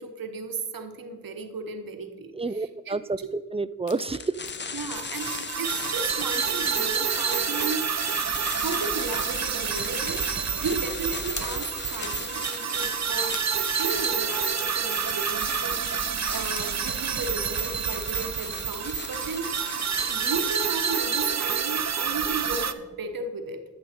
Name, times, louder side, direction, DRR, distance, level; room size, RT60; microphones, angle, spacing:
voice 1, 0.0-3.3 4.7-7.9 8.6-10.3 10.6-13.4 13.8-19.6 20.1-23.6, right 3 dB, 85° right, 6 dB, 1.0 m, -35 dB
voice 2, 2.3-4.4, right 3 dB, 20° right, 17 dB, 0.3 m, -29 dB
sound 1, 3.9-4.1 4.4-4.6 5.2-5.4 5.8-6.3 6.6-6.8 7.4-7.5 7.8-7.9 8.2-8.3 8.6-8.7 8.9-9.0 9.3-9.4 9.7-9.8 10.2-10.3 10.7-11.0 11.4-11.5 12.0-12.1 12.4-12.5 12.8-12.9 13.3-13.5 14.0-14.2 14.6-15.0 15.3-15.8 16.1-16.2 16.6-16.7 17.0-17.1, left 4 dB, 55° left, 1.1 m, -42 dB
sound 2, 4.1-21.8, left 5 dB, 35° left, 0.5 m, -39 dB
sound 3, 4.9-22.7, right 7 dB, 55° right, 0.6 m, -28 dB
13.5 x 6.1 x 4.3 m, 1.4 s
cardioid pair, 45°, 34 cm